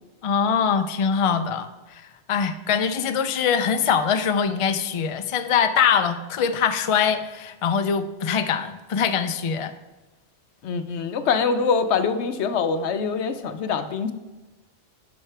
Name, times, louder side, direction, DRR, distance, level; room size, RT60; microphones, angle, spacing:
voice 1, 0.2-2.0 2.3-9.7, left 7 dB, 55° left, 9 dB, 0.3 m, -23 dB
voice 2, 10.6-14.1, left 5 dB, 75° left, 10 dB, 0.9 m, -24 dB
10.0 x 6.4 x 3.3 m, 1.1 s
omnidirectional pair, 1.2 m